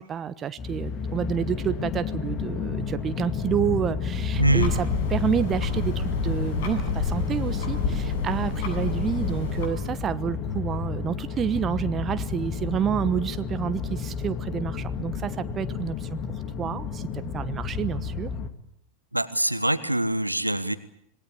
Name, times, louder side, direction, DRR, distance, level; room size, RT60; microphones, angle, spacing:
voice 1, 0.0-16.2 16.6-17.1 17.3-18.3, right 8 dB, 25° right, 12 dB, 1.2 m, -29 dB
sound 1, 0.6-18.5, left 6 dB, 30° left, 2.6 m, -31 dB
sound 2, 4.3-9.7, left 4 dB, 55° left, 7.7 m, -29 dB
voice 2, 4.4-4.7 19.1-20.7, right 1 dB, 85° right, 13 dB, 1.3 m, -24 dB
26.0 x 20.0 x 8.5 m, 0.76 s
figure-of-eight pair, 90°, 0 cm